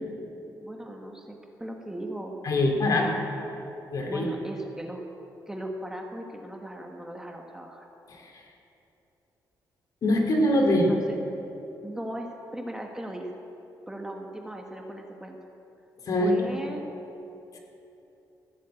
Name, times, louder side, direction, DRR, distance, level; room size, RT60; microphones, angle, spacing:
voice 1, 0.6-2.3 3.0-3.2 4.0-5.0 5.5-7.8 10.7-11.2 11.8-13.4 13.9-15.4 16.2-16.8, right 1 dB, 10° right, 2 dB, 1.3 m, -38 dB
voice 2, 2.4-3.1 3.9-4.2 8.1-8.4 10.0-10.9 16.1-16.6 17.5-17.6, left 1 dB, 55° left, 1 dB, 2.5 m, -23 dB
15.0 x 7.4 x 8.8 m, 2.9 s
cardioid pair, 105°, 7 cm